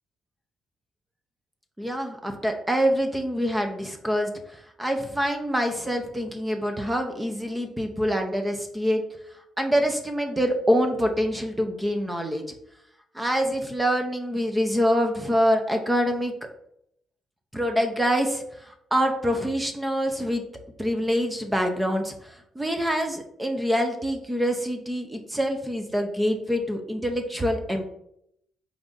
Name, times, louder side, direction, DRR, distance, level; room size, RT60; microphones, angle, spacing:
voice 1, 1.8-9.0 9.6-12.4 13.1-16.3 17.5-20.4 20.8-27.9, equal, 10° right, 4 dB, 0.6 m, -25 dB
4.6 x 2.6 x 3.8 m, 0.74 s
cardioid pair, 90°, 0 cm